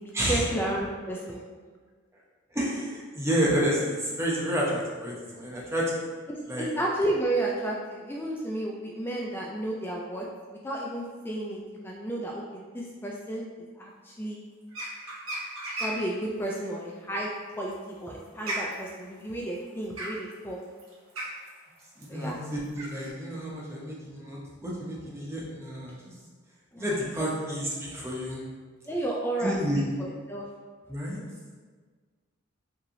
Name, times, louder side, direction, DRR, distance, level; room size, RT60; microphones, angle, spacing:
voice 1, 0.0-1.4 6.3-13.5 13.8-14.4 15.8-20.6 22.1-22.4 26.7-27.3 28.9-29.6 30.0-30.5, right 1 dB, 10° left, -3 dB, 0.3 m, -32 dB
voice 2, 2.5-5.9 6.5-6.7 22.0-26.0 26.8-28.4 29.4-29.8 30.9-31.2, equal, 15° right, -5 dB, 0.8 m, -30 dB
sound 1, 14.7-16.1 17.5-23.1, right 1 dB, 75° right, 1.1 m, -36 dB
5.2 x 3.2 x 2.6 m, 1.5 s
head